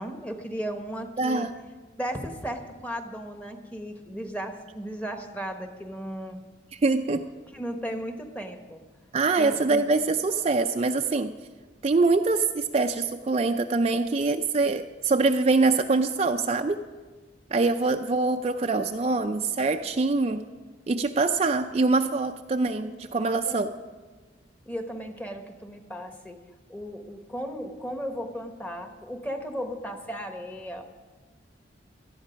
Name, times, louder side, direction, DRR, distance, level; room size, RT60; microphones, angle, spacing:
voice 1, 0.0-1.5 2.0-6.4 7.5-8.8 9.4-9.9 23.2-23.8 24.7-26.4 26.7-30.8, equal, 10° left, 6 dB, 1.1 m, -35 dB
voice 2, 1.2-1.5 6.7-7.2 9.1-11.3 11.8-16.8 17.5-20.4 20.9-23.7, right 3 dB, 35° right, 6 dB, 0.4 m, -24 dB
18.0 x 12.5 x 5.1 m, 1.3 s
head